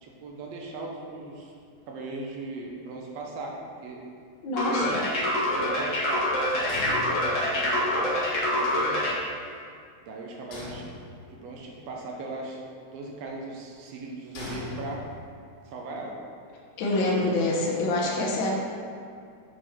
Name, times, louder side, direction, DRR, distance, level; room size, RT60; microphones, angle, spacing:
voice 1, 0.0-1.5 1.9-4.0 4.8-5.2 5.5-9.0 10.1-10.9 11.3-12.6 12.9-15.0 15.7-16.2 18.0-18.2, right 2 dB, 75° right, -1 dB, 1.6 m, -38 dB
voice 2, 4.4-5.0 16.8-18.5, left 2 dB, 70° left, -3 dB, 1.1 m, -26 dB
sound 1, 4.6-9.2, left 1 dB, 45° left, 1.0 m, -26 dB
sound 2, 6.7-7.8 10.5-11.5 14.3-15.5, left 3 dB, 90° left, 2.8 m, -39 dB
6.8 x 4.4 x 4.4 m, 2.2 s
omnidirectional pair, 3.5 m